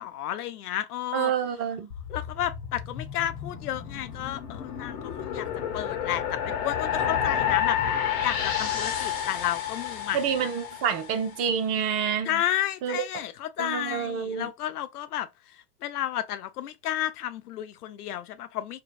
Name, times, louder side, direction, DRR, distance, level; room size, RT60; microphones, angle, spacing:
voice 1, 0.0-1.3 2.1-5.5 5.7-7.8 8.2-10.5 12.2-18.8, left 12 dB, 70° left, 0.6 m, -32 dB
voice 2, 1.1-1.9 10.1-12.4 12.8-13.0 13.6-14.5, right 7 dB, 35° right, 0.6 m, -28 dB
sound 1, 1.9-11.3, left 8 dB, 40° left, 1.1 m, -30 dB
3.3 x 2.2 x 2.6 m
figure-of-eight pair, 95°, 47 cm